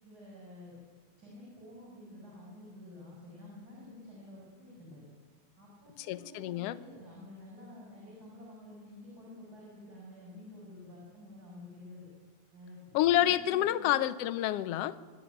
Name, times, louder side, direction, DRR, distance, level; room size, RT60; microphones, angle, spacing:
voice 1, 0.0-0.8 1.2-5.1 5.6-12.1 12.5-12.8 13.2-14.0, left 1 dB, 30° right, -5 dB, 6.3 m, -50 dB
voice 2, 6.1-6.8 12.9-15.0, left 13 dB, 70° left, 14 dB, 1.6 m, -28 dB
24.0 x 12.0 x 9.1 m, 1.5 s
omnidirectional pair, 3.3 m